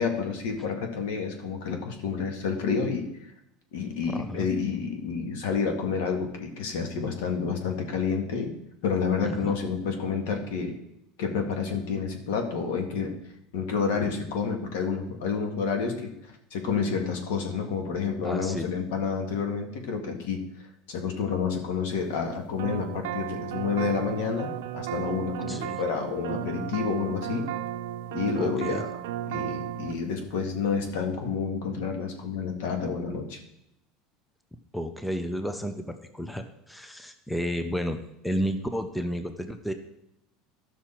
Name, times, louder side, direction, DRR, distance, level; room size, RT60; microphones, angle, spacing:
voice 1, 0.0-3.1 3.7-8.5 8.8-10.7 11.2-13.2 13.5-16.1 16.5-20.4 20.9-27.5 28.1-29.0 29.3-33.4, left 5 dB, 80° left, 4 dB, 1.8 m, -29 dB
voice 2, 4.1-4.5 9.2-9.6 18.2-18.7 25.5-25.8 28.4-28.8 34.7-39.7, equal, 5° left, 7 dB, 0.6 m, -32 dB
sound 1, 22.6-30.0, right 12 dB, 90° right, 0.5 m, -34 dB
13.5 x 6.0 x 4.4 m, 0.81 s
supercardioid pair, 155°, 0 cm